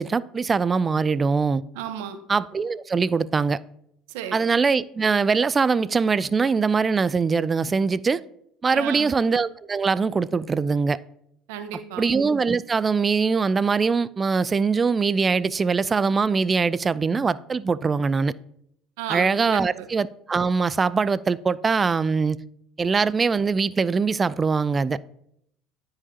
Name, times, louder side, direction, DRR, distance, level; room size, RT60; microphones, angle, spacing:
voice 1, 0.0-1.6 2.3-3.6 4.3-8.2 8.6-11.0 12.0-18.3 19.1-22.4 22.8-25.0, right 5 dB, 30° right, 0.3 m, -22 dB
voice 2, 1.7-2.2 4.1-4.4 8.7-9.1 11.5-12.1 19.0-19.9, right 10 dB, 80° right, 1.0 m, -33 dB
13.0 x 4.9 x 2.8 m
hypercardioid pair, 80°, 0 cm